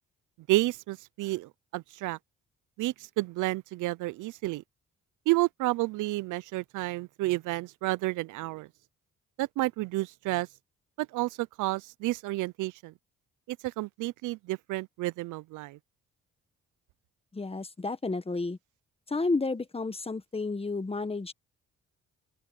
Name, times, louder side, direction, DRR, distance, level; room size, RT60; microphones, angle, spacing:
voice 1, 0.5-2.2 2.8-4.6 5.3-8.7 9.4-10.5 11.0-12.9 13.5-15.8, right 19 dB, 85° right, 0.5 m, -30 dB
voice 2, 17.3-18.6 19.1-21.3, left 3 dB, 20° left, 1.4 m, -31 dB
open air
cardioid pair, 90°, 30 cm